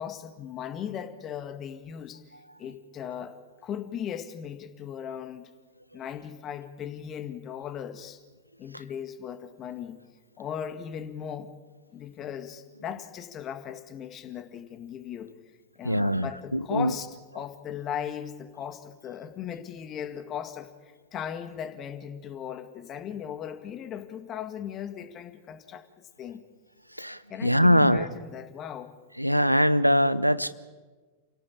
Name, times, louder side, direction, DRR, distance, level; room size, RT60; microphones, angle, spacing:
voice 1, 0.0-2.2 2.6-5.5 5.9-8.2 8.6-10.0 10.4-11.5 11.9-15.3 15.8-17.1 17.3-26.4 27.3-28.9, left 9 dB, 30° left, 10 dB, 1.9 m, -37 dB
voice 2, 15.8-16.9 27.0-28.1 29.2-30.5, equal, 90° right, 17 dB, 0.8 m, -22 dB
29.0 x 17.0 x 8.7 m, 1.3 s
figure-of-eight pair, 90°, 0 cm